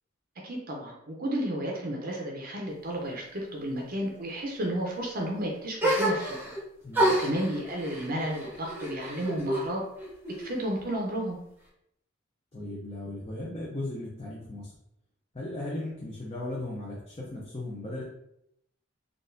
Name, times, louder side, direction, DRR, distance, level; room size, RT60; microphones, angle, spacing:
voice 1, 0.4-6.5 7.2-9.8 10.4-11.4, right 1 dB, 45° right, -1 dB, 0.6 m, -32 dB
sound 1, 5.8-6.6 6.9-9.7 10.0-10.8, right 1 dB, 10° right, 0.8 m, -29 dB
voice 2, 6.8-7.1 12.5-14.7 15.3-18.0, left 2 dB, 30° left, -5 dB, 0.6 m, -37 dB
3.8 x 2.4 x 2.6 m, 0.76 s
head